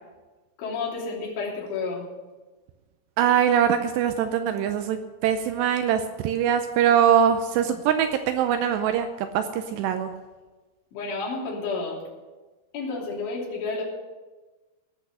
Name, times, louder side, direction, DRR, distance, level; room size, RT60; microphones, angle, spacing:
voice 1, 0.6-2.0 7.7-7.8 10.9-12.0 12.7-13.8, left 4 dB, 90° left, -6 dB, 5.6 m, -31 dB
voice 2, 3.2-10.1, right 9 dB, 80° right, 8 dB, 2.6 m, -22 dB
19.0 x 6.3 x 6.6 m, 1.3 s
omnidirectional pair, 5.3 m